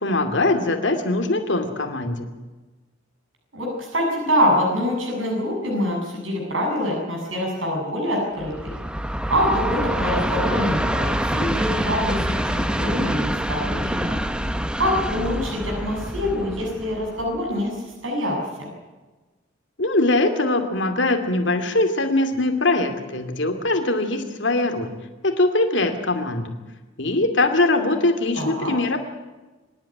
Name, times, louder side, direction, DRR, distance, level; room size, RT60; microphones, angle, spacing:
voice 1, 0.0-2.3 19.8-24.9 25.2-26.5 27.0-29.0, left 2 dB, 65° left, 6 dB, 2.5 m, -22 dB
voice 2, 3.5-8.7 9.3-14.2 14.8-18.7 28.4-28.7, equal, 85° right, -1 dB, 7.3 m, -25 dB
Train, 8.4-17.6, equal, 5° right, 0.9 m, -26 dB
25.5 x 11.5 x 9.9 m, 1.2 s
head